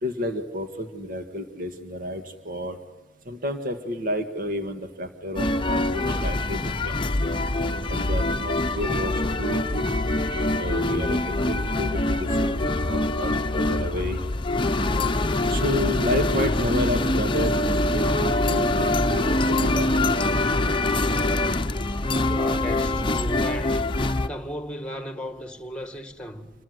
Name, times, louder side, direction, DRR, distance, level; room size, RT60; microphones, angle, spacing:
voice 1, 0.0-2.8 3.3-7.0 7.9-9.8 10.3-14.2 15.5-20.2, left 1 dB, 50° right, 1.8 m, -31 dB
sound 1, 5.4-24.3, left 2 dB, 25° left, 0.9 m, -24 dB
voice 2, 22.2-23.9 24.3-26.5, equal, 5° left, 2.1 m, -35 dB
27.5 x 22.0 x 9.5 m
head